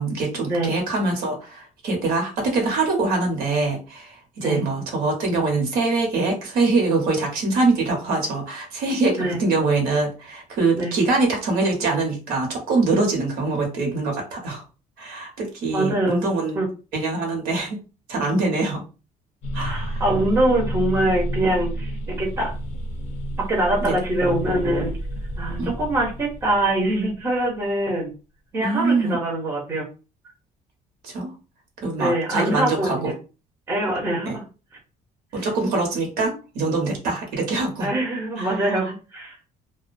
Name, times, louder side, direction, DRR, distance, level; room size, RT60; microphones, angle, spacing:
voice 1, 0.0-14.6 15.0-16.6 16.9-17.8 18.1-18.8 19.5-20.0 23.8-23.9 25.6-25.7 28.6-29.2 31.0-31.3 31.8-33.1 34.3-34.4 35.3-37.9 38.4-38.9, right 3 dB, 75° right, 1 dB, 1.0 m, -24 dB
voice 2, 15.7-16.2 16.5-16.7 19.6-22.5 23.5-24.9 25.4-28.1 28.5-29.8 32.0-33.1 33.7-34.4 37.8-39.3, right 1 dB, 15° right, -1 dB, 0.7 m, -23 dB
sound 1, 19.4-27.5, right 1 dB, 45° left, 0.4 m, -30 dB
2.3 x 2.1 x 2.5 m, 0.33 s
cardioid pair, 175°, 16 cm